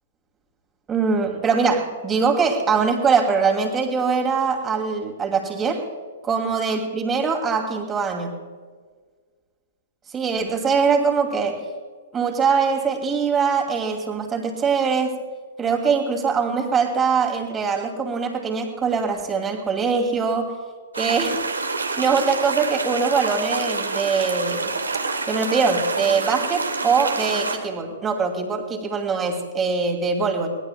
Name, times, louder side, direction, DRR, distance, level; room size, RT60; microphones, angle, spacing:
voice 1, 0.9-5.8 6.2-8.3 10.1-11.6 12.1-15.1 15.6-20.5 21.0-21.4 22.0-24.7 25.3-30.5, right 5 dB, 20° right, 2 dB, 2.5 m, -22 dB
sound 1, 20.9-27.6, right 3 dB, 80° right, 1.7 m, -27 dB
23.0 x 18.5 x 2.3 m, 1.5 s
figure-of-eight pair, 110°, 0 cm